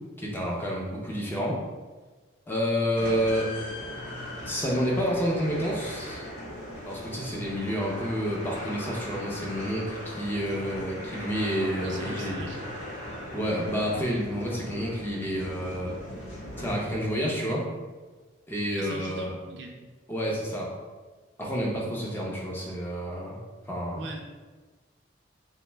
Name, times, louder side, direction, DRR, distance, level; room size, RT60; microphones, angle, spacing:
voice 1, 0.2-1.6 2.5-3.5 4.4-6.3 6.9-12.5 13.3-16.0 16.6-17.7 18.5-19.3 20.1-20.7 21.4-23.4 23.7-24.0, equal, 10° left, -3 dB, 0.4 m, -29 dB
sound 1, 3.0-17.2, left 1 dB, 75° left, 0.8 m, -39 dB
voice 2, 11.8-12.7 18.8-19.7 23.9-24.2, right 2 dB, 70° right, 1 dB, 0.4 m, -40 dB
2.6 x 2.1 x 3.2 m, 1.3 s
head